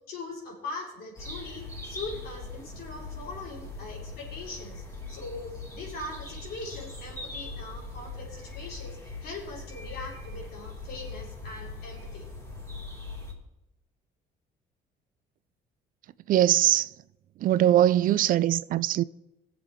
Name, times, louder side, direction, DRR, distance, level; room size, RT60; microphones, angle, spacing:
voice 1, 0.1-12.3, left 3 dB, 65° left, 4.4 m, -41 dB
sound 1, 1.2-13.3, left 2 dB, 20° left, 3.6 m, -41 dB
voice 2, 16.3-16.9 17.4-19.0, right 12 dB, 55° right, 0.4 m, -22 dB
20.5 x 7.4 x 3.6 m
cardioid pair, 110°, 17 cm